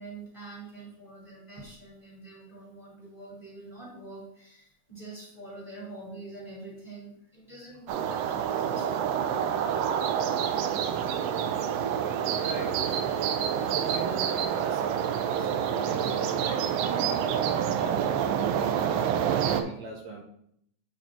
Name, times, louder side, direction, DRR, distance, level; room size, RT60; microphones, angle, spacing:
voice 1, 0.0-9.2 9.6-9.8, right 2 dB, 10° left, -5 dB, 2.6 m, -45 dB
sound 1, 7.9-19.6, right 8 dB, 90° right, 1.4 m, -27 dB
voice 2, 12.4-13.1 13.6-14.9 15.3-20.2, right 4 dB, 75° right, 0 dB, 1.8 m, -41 dB
8.9 x 4.0 x 3.7 m, 0.71 s
omnidirectional pair, 3.5 m